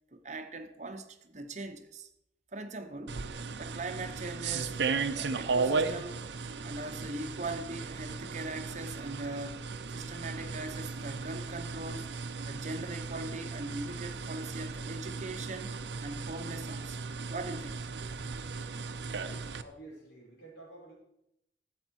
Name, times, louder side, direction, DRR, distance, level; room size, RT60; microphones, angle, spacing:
voice 1, 0.1-2.1 2.5-3.2 3.6-4.8 5.1-6.2 6.6-9.6 9.9-12.1 12.5-15.7 16.0-17.0 17.3-17.8, right 2 dB, 40° right, 0.9 m, -40 dB
sound 1, 3.1-19.6, right 4 dB, 80° right, 0.6 m, -36 dB
voice 2, 19.1-20.9, right 2 dB, 85° left, 5.6 m, -51 dB
14.0 x 7.8 x 4.6 m
head